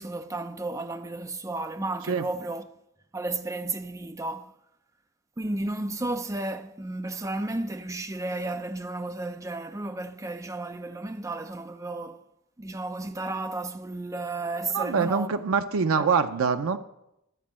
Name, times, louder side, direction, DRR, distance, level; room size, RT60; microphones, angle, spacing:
voice 1, 0.0-2.7 3.1-4.5 5.4-12.2 12.6-15.4 16.0-16.1, right 2 dB, 15° right, 0.4 m, -33 dB
voice 2, 14.7-16.8, right 5 dB, 70° right, 0.5 m, -24 dB
12.5 x 4.3 x 7.3 m
head